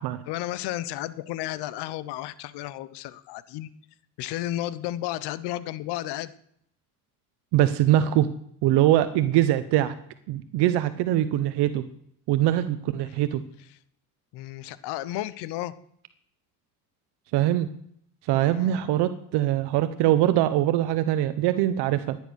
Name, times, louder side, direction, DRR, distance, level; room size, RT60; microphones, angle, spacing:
voice 1, 0.2-3.7 4.2-6.3 13.0-13.2 14.3-15.7 18.4-18.9, left 14 dB, 80° left, 17 dB, 1.1 m, -33 dB
voice 2, 7.5-8.3 8.6-9.9 10.3-11.8 12.3-13.4 17.3-17.7 18.3-22.2, right 13 dB, 80° right, 12 dB, 1.0 m, -22 dB
15.0 x 10.0 x 6.4 m, 0.69 s
cardioid pair, 105°, 40 cm